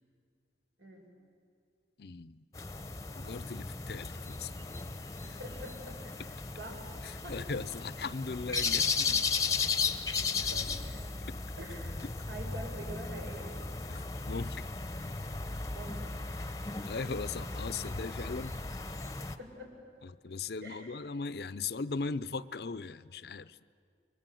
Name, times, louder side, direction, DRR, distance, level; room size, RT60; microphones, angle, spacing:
voice 1, 2.0-2.4 3.1-4.5 5.2-5.4 6.2-6.3 7.0-9.3 10.4-10.5 13.9-14.7 16.9-18.6 20.0-23.6, left 4 dB, 60° left, 15 dB, 0.6 m, -39 dB
sound 1, 2.5-19.4, left 4 dB, 20° left, 0.8 m, -35 dB
voice 2, 5.2-6.1 6.6-6.9 7.2-7.4 9.8-10.1 10.5-11.0 11.6-13.5 15.7-16.1 19.4-19.7 20.6-21.0, right 1 dB, 85° right, 1 dB, 5.6 m, -46 dB
29.5 x 23.0 x 7.7 m, 2.4 s
head